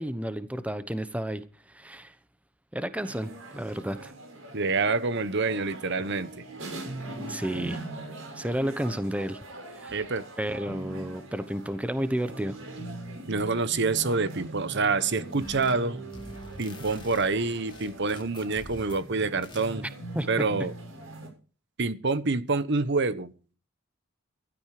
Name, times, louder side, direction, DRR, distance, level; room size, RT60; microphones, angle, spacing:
voice 1, 0.0-1.4 1.7-2.2 2.7-4.1 7.3-7.8 8.4-9.4 9.7-10.0 10.4-12.6 20.1-20.3, right 1 dB, 5° right, 1.0 m, -31 dB
sound 1, 3.0-21.3, right 2 dB, 75° right, 7.1 m, -41 dB
voice 2, 4.5-6.4 9.9-10.2 13.3-16.0 16.6-19.8 20.3-20.7 21.8-23.3, right 3 dB, 60° right, 1.1 m, -27 dB
sound 2, 15.4-15.9 16.1-19.1 19.4-19.7, left 1 dB, 25° left, 2.1 m, -46 dB
16.0 x 12.5 x 5.0 m
head